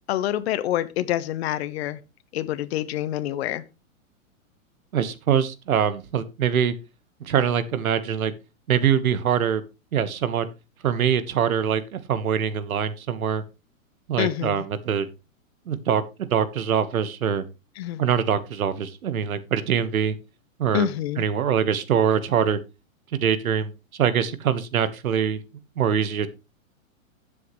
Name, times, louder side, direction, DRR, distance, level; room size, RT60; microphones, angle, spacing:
voice 1, 0.1-2.0 2.3-3.6 14.2-14.6 17.8-18.0 20.7-21.2, left 13 dB, 50° left, 1.0 m, -26 dB
voice 2, 4.9-6.7 7.2-8.3 8.7-9.6 9.9-10.5 10.8-13.4 14.1-15.1 15.7-17.4 18.0-20.2 20.6-20.9 21.2-22.6 23.1-25.4 25.8-26.3, right 8 dB, 85° right, 1.5 m, -23 dB
13.0 x 7.8 x 3.2 m
hypercardioid pair, 145°, 41 cm